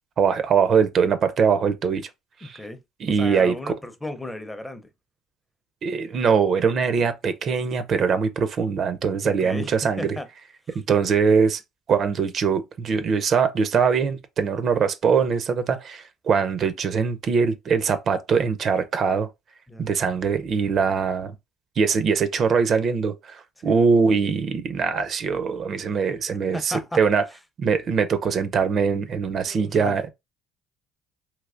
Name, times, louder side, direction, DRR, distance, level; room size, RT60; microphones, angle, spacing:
voice 1, 0.2-2.1 2.4-2.6 3.0-3.7 5.8-10.2 10.7-11.6 11.9-19.3 19.8-21.3 21.8-27.2 27.6-30.1, right 6 dB, 45° right, 0.4 m, -22 dB
voice 2, 2.4-2.8 3.1-4.9 7.0-7.1 9.2-10.3 10.7-10.8 19.7-19.9 23.6-23.7 26.5-27.0 29.2-30.1, left 1 dB, 10° left, 0.5 m, -35 dB
3.2 x 2.9 x 2.4 m
cardioid pair, 110°, 0 cm